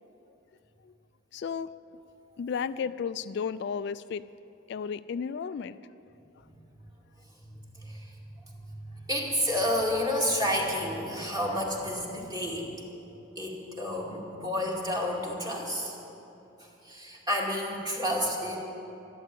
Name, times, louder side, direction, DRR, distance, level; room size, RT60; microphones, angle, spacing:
voice 1, 1.3-1.7 2.4-4.2 4.7-5.8, left 6 dB, 55° left, 15 dB, 0.3 m, -33 dB
voice 2, 7.4-8.1 8.4-12.7 13.4-15.9 16.6-18.6, equal, 20° right, -2 dB, 2.2 m, -30 dB
12.5 x 12.5 x 8.5 m, 3.0 s
head